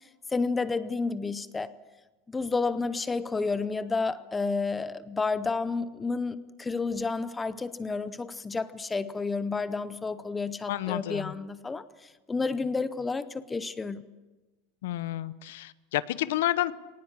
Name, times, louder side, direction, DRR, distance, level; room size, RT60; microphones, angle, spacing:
voice 1, 0.3-1.7 2.3-14.0, left 4 dB, 10° left, 0.6 m, -30 dB
voice 2, 10.7-11.3 14.8-16.7, left 14 dB, 80° left, 0.9 m, -30 dB
23.5 x 18.5 x 7.4 m
supercardioid pair, 180°, 0 cm